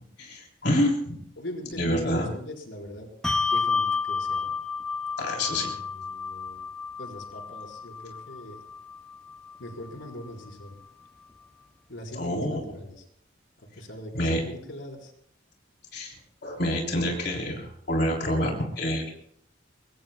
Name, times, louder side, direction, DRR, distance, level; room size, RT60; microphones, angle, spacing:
voice 1, 0.2-1.2 1.8-2.3 5.2-5.7 12.2-12.6 14.1-14.4 15.9-16.2 16.4-19.1, left 1 dB, 60° left, 0 dB, 3.5 m, -27 dB
voice 2, 1.4-3.1 3.4-4.5 5.4-6.6 7.0-8.6 9.6-10.8 11.9-13.0 13.6-15.1, left 1 dB, 75° left, 0 dB, 4.8 m, -41 dB
Bell, 3.2-10.1, left 5 dB, 5° left, 0.7 m, -31 dB
23.0 x 23.0 x 2.3 m, 0.67 s
head